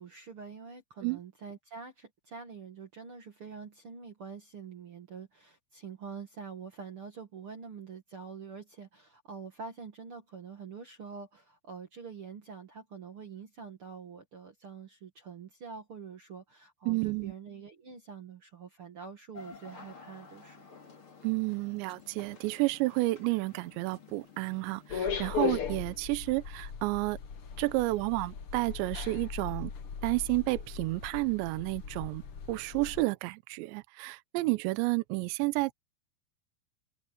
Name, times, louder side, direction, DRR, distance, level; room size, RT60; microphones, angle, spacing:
voice 1, 0.0-20.9, right 5 dB, 60° right, 1.4 m, -46 dB
voice 2, 16.9-17.3 21.2-27.2 27.6-29.7 30.0-32.2 32.5-35.7, right 22 dB, 80° right, 2.9 m, -31 dB
sound 1, 19.3-25.0, left 4 dB, 30° left, 3.4 m, -52 dB
sound 2, 24.9-33.0, left 7 dB, 70° left, 1.2 m, -38 dB
omnidirectional pair, 5.4 m